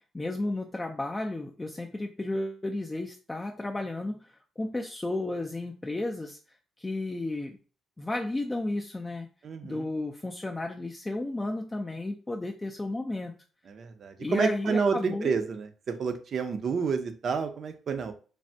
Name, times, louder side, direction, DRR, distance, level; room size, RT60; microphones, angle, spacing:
voice 1, 0.1-6.4 6.8-7.6 8.0-9.3 9.6-13.3 14.2-15.4, left 2 dB, 15° left, 2 dB, 0.3 m, -33 dB
voice 2, 9.4-9.8 13.7-18.1, right 5 dB, 55° right, 8 dB, 0.5 m, -29 dB
3.3 x 2.1 x 2.6 m, 0.38 s
cardioid pair, 90°, 0 cm